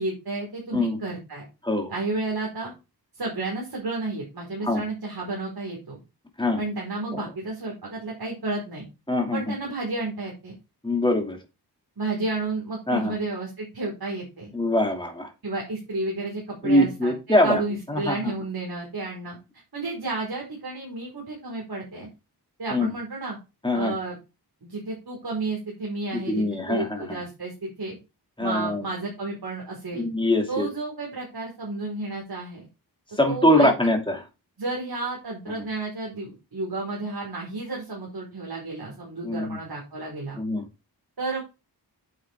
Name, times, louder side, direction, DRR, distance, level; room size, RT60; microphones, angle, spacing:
voice 1, 0.0-1.4 1.9-2.7 3.1-6.0 6.6-8.9 9.3-10.5 12.0-14.5 15.4-19.4 19.7-22.1 22.6-23.4 23.7-24.2 24.6-28.0 28.4-30.0 30.5-32.6 33.3-34.0 34.6-40.4 41.2-41.4, right 2 dB, 70° right, -2 dB, 4.6 m, -32 dB
voice 2, 9.1-9.4 10.8-11.4 12.9-13.2 14.5-15.3 16.6-17.6 17.9-18.3 22.7-22.9 23.6-23.9 26.1-27.2 28.4-28.8 30.0-30.7 33.2-34.2 39.2-39.6 40.4-40.6, left 1 dB, 10° left, 2 dB, 2.4 m, -23 dB
8.8 x 7.9 x 3.6 m, 0.27 s
wide cardioid pair, 105°, 40 cm